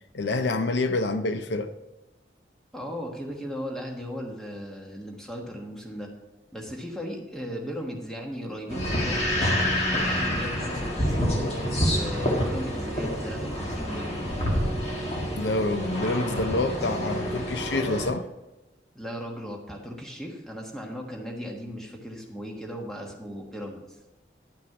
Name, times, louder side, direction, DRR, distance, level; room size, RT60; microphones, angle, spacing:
voice 1, 0.1-1.7 15.3-18.3, left 2 dB, 75° left, 0.6 m, -27 dB
voice 2, 2.7-6.1 6.5-14.1 18.9-23.8, equal, 5° left, 1.3 m, -37 dB
sound 1, 8.7-18.1, equal, 35° left, 1.6 m, -27 dB
10.5 x 5.9 x 4.8 m
head